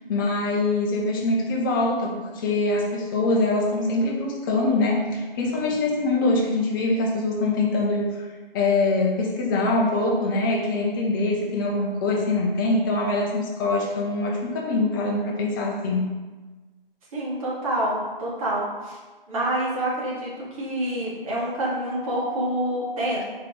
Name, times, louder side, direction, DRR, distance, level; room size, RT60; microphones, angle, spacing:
voice 1, 0.1-8.2 8.5-16.1, left 2 dB, 20° left, -1 dB, 0.9 m, -23 dB
voice 2, 17.1-19.0 19.3-23.2, right 1 dB, 35° right, -6 dB, 2.1 m, -27 dB
4.8 x 4.7 x 4.8 m, 1.3 s
figure-of-eight pair, 140°, 29 cm